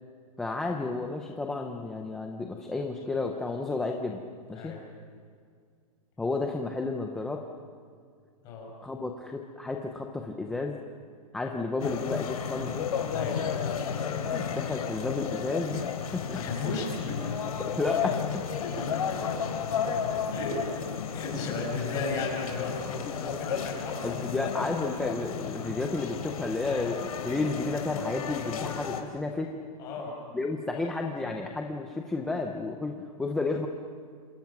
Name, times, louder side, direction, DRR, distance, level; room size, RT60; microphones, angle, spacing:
voice 1, 0.4-4.2 4.5-4.7 6.2-7.4 8.8-10.8 11.3-12.9 14.2-16.4 17.6-18.4 24.0-29.5 30.3-33.7, left 3 dB, 5° left, 2 dB, 0.6 m, -32 dB
sound 1, 11.8-29.0, left 7 dB, 75° left, 3.5 m, -33 dB
voice 2, 13.1-13.6 16.3-17.4 18.6-19.5 20.3-20.9 21.1-24.1 29.8-30.2 31.2-31.4, left 3 dB, 20° left, -1 dB, 6.2 m, -35 dB
27.5 x 27.0 x 5.9 m, 2.1 s
hypercardioid pair, 180°, 19 cm